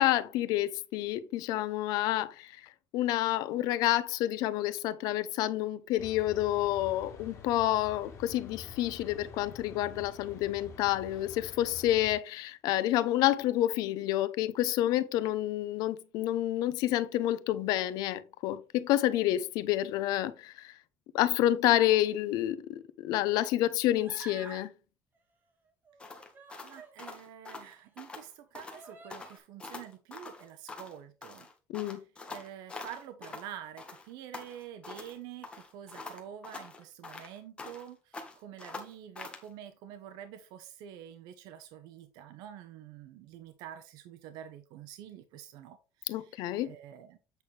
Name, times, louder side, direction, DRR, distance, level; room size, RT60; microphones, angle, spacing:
voice 1, 0.0-2.5 2.9-20.7 21.1-24.7 31.7-32.0 46.1-46.7, left 14 dB, 70° left, 0.8 m, -29 dB
sound 1, 6.0-12.2, left 5 dB, 45° left, 2.9 m, -48 dB
Human voice, 24.0-24.7 25.8-26.9 27.7-27.8 28.7-29.4, right 4 dB, 30° right, 2.0 m, -49 dB
sound 2, 26.0-28.3 28.5-28.8 29.1-31.0 31.2-33.5 33.8-35.2 35.4-37.9 38.1-39.5, left 3 dB, 15° left, 1.5 m, -45 dB
voice 2, 26.6-31.5 31.8-32.0 32.3-47.2, right 10 dB, 80° right, 1.0 m, -47 dB
8.3 x 6.2 x 3.3 m
cardioid pair, 160°, 7 cm